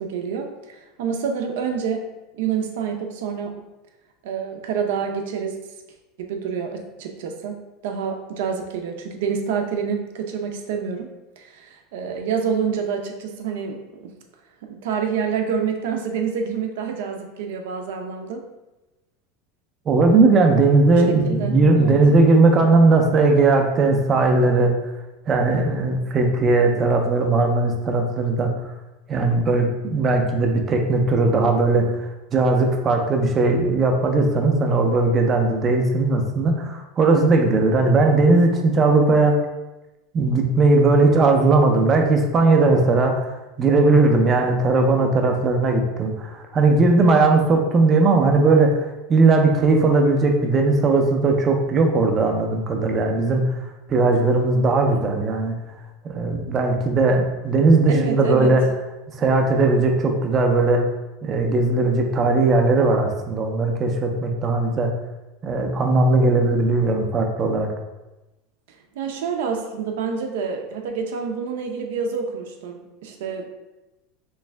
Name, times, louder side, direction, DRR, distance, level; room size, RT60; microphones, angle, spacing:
voice 1, 0.0-3.7 4.2-5.7 6.2-14.1 14.6-18.5 21.0-22.0 57.9-58.6 69.0-73.5, right 6 dB, 80° right, 4 dB, 0.6 m, -28 dB
voice 2, 19.9-24.7 25.3-28.5 29.1-39.4 40.1-53.6 53.9-55.5 56.0-58.7 59.2-60.9 61.2-64.9 65.4-67.7, right 3 dB, 25° right, 3 dB, 0.5 m, -18 dB
3.5 x 3.1 x 3.3 m, 1.0 s
supercardioid pair, 155°, 0 cm